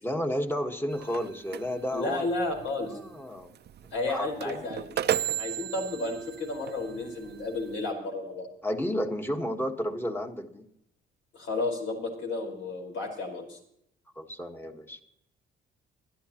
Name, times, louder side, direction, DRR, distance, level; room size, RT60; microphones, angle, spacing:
voice 1, 0.0-2.3 2.8-3.5 3.8-4.6 8.6-10.7 14.1-15.0, equal, 10° left, 5 dB, 1.5 m, -32 dB
sound 1, 0.9-7.9, right 11 dB, 55° right, 0.6 m, -36 dB
voice 2, 1.9-3.0 3.9-4.8 5.4-8.5 11.3-13.6, left 2 dB, 75° left, 2 dB, 4.7 m, -32 dB
24.0 x 12.0 x 2.9 m, 0.73 s
cardioid pair, 90°, 20 cm